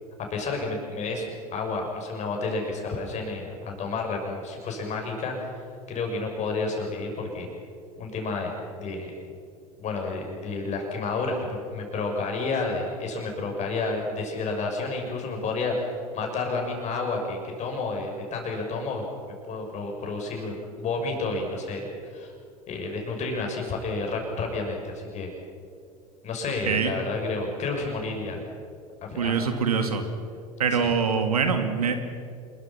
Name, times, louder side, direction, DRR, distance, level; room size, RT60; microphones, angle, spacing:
voice 1, 0.3-5.5 5.9-7.5 8.0-9.1 9.8-22.3 22.7-25.3 26.2-28.4 29.0-29.4 30.7-30.9, left 3 dB, 35° left, 2 dB, 6.5 m, -30 dB
voice 2, 29.2-30.0 30.6-31.9, right 6 dB, 80° right, 7 dB, 2.3 m, -24 dB
27.5 x 22.0 x 5.9 m, 2.4 s
figure-of-eight pair, 80°, 19 cm